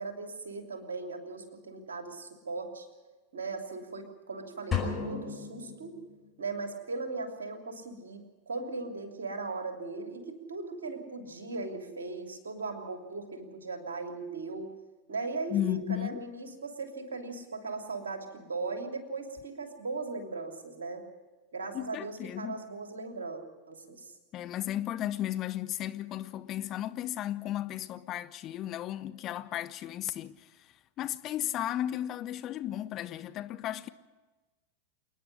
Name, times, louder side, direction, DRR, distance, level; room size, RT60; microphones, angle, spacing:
voice 1, 0.0-2.9 3.3-5.9 6.4-14.7 15.1-21.0 21.5-24.1, right 3 dB, 65° right, 3.0 m, -38 dB
sound 1, 4.7-6.5, left 6 dB, 15° left, 5.4 m, -35 dB
voice 2, 15.5-16.2 21.7-22.6 24.3-33.9, left 12 dB, 35° left, 0.7 m, -34 dB
28.0 x 10.0 x 9.7 m
figure-of-eight pair, 90°, 0 cm